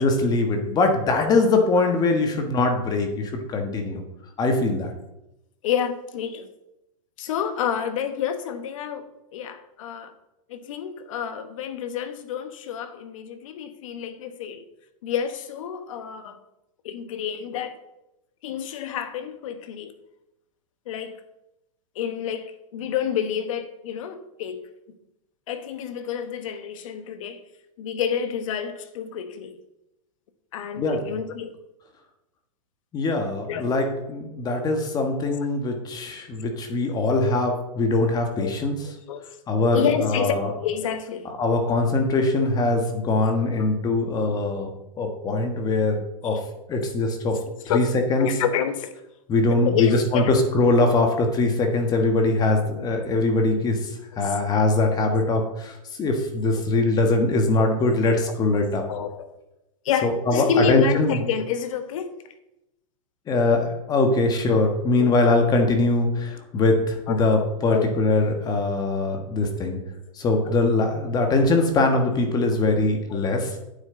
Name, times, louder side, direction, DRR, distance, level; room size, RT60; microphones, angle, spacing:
voice 1, 0.0-4.0 4.4-4.9 30.8-31.2 32.9-38.8 39.5-40.5 41.4-44.7 45.0-46.4 46.7-47.4 47.7-48.3 49.3-55.7 56.0-58.8 60.0-61.2 63.3-69.8 70.2-73.5, left 2 dB, 20° left, 4 dB, 1.4 m, -22 dB
voice 2, 5.6-6.5 7.2-10.1 10.5-14.6 15.0-16.4 16.8-17.7 18.4-19.9 20.9-21.2 21.9-24.7 25.5-27.4 27.8-29.6 30.5-31.5 33.5-33.6 37.2-37.4 38.3-38.6 39.1-39.3 39.7-40.3 40.6-41.3 43.6-43.7 46.2-46.4 47.7-48.9 49.6-50.3 54.3-54.4 56.5-56.6 57.6-57.7 58.3-58.4 58.9-59.3 59.8-62.1 65.0-65.1 66.3-66.4 67.1-67.3 67.7-67.9 70.5-70.6 73.1-73.3, left 8 dB, 65° left, 9 dB, 1.2 m, -29 dB
9.0 x 7.6 x 3.8 m, 0.89 s
supercardioid pair, 145°, 18 cm